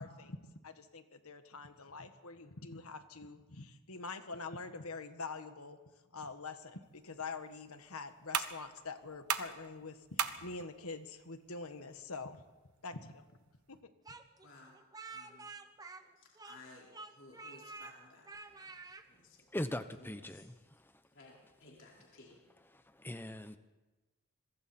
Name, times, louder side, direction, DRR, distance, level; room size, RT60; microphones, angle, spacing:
voice 1, 0.0-5.8 6.1-12.4 12.8-13.2 13.7-13.9, left 4 dB, 75° left, 9 dB, 1.5 m, -45 dB
sound 1, 6.8-13.8, right 8 dB, 80° right, 1.2 m, -42 dB
Speech, 14.1-16.7 16.9-17.9 18.3-19.0, right 3 dB, 15° right, 0.9 m, -49 dB
voice 2, 14.4-14.8 15.1-15.5 16.2-18.7 19.1-19.5 20.0-20.4 21.1-22.4, left 2 dB, 55° left, -3 dB, 4.9 m, -58 dB
voice 3, 19.5-21.0 22.7-23.6, left 1 dB, 10° left, 10 dB, 0.9 m, -41 dB
26.5 x 22.5 x 4.4 m, 1.2 s
head